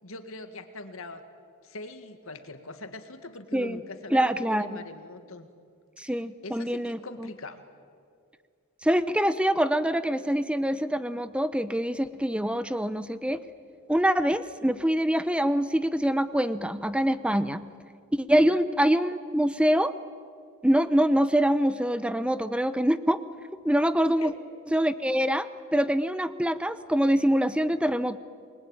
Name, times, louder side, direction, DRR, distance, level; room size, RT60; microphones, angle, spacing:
voice 1, 0.0-1.2 1.6-5.5 6.0-7.6 18.4-18.6 24.0-24.3, left 2 dB, 65° left, 8 dB, 1.9 m, -42 dB
voice 2, 4.1-4.8 6.0-7.3 8.8-13.4 13.9-17.7 18.1-20.0 20.6-23.2 23.6-24.3 24.7-25.5 25.7-28.2, equal, 5° right, 13 dB, 0.7 m, -25 dB
28.5 x 21.0 x 9.0 m, 2.2 s
head